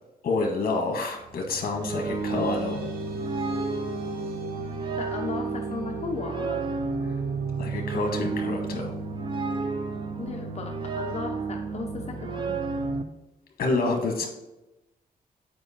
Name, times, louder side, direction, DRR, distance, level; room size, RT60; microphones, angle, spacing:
voice 1, 0.2-2.9 7.0-7.1 7.6-8.9 13.6-14.3, left 3 dB, 75° left, 3 dB, 1.2 m, -28 dB
sound 1, 1.2-13.0, right 4 dB, 30° right, 0.6 m, -32 dB
sound 2, 1.7-12.6, right 2 dB, 80° right, 1.1 m, -40 dB
voice 2, 5.0-6.6 10.2-12.6, left 4 dB, 45° left, 1 dB, 0.8 m, -35 dB
7.8 x 4.8 x 4.1 m, 0.99 s
wide cardioid pair, 135°, 15 cm